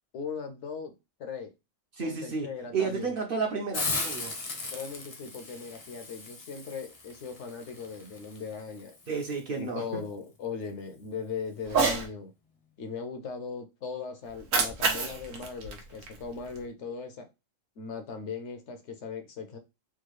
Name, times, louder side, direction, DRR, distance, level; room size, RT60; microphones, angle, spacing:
voice 1, 0.1-0.9 1.2-1.5 2.0-3.1 4.7-8.9 9.6-12.3 12.8-17.3 17.8-19.6, left 5 dB, 70° left, 0.9 m, -39 dB
voice 2, 1.9-4.3 9.1-10.0, right 5 dB, 55° right, 0.8 m, -32 dB
Hiss, 3.7-9.4, left 3 dB, 35° left, 0.6 m, -38 dB
Cat, 11.6-12.1 14.3-16.6, right 4 dB, 85° right, 1.2 m, -29 dB
3.6 x 2.3 x 3.0 m
omnidirectional pair, 1.3 m